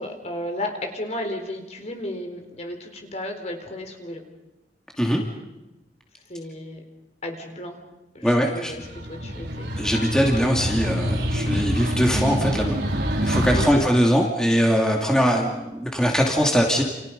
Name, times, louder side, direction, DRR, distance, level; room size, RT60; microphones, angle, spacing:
voice 1, 0.0-4.2 6.3-6.8 7.2-7.8 8.1-9.7 13.5-13.9, left 1 dB, 40° left, 4 dB, 4.2 m, -33 dB
voice 2, 8.2-8.7 9.8-12.8 13.2-16.8, equal, 5° left, 0 dB, 2.7 m, -21 dB
sound 1, 8.7-13.7, equal, 70° right, 3.9 m, -26 dB
29.5 x 29.5 x 5.4 m, 1.0 s
head